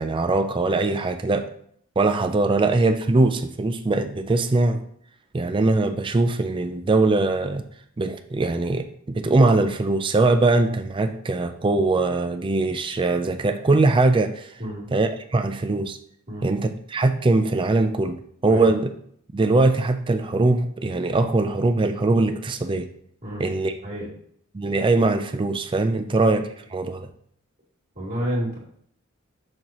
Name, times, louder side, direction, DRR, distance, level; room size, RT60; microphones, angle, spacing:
voice 1, 0.0-1.5 2.0-4.8 5.3-7.6 8.0-14.6 14.9-16.0 16.4-18.9 19.3-22.9 23.4-23.7 24.5-27.1, right 2 dB, 25° right, 7 dB, 0.4 m, -21 dB
voice 2, 27.9-28.6, equal, 40° right, -5 dB, 2.4 m, -30 dB
6.4 x 6.2 x 3.0 m, 0.65 s
head